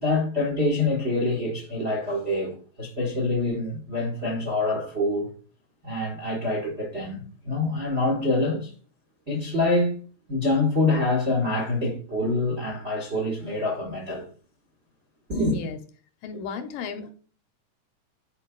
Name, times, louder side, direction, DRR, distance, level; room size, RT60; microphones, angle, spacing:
voice 1, 0.0-5.3 5.8-8.7 9.3-10.0 10.3-14.2 15.3-15.6, left 2 dB, 65° right, 0.6 m, -25 dB
voice 2, 16.2-17.1, left 5 dB, 85° left, 2.4 m, -34 dB
10.5 x 4.7 x 2.3 m
omnidirectional pair, 3.8 m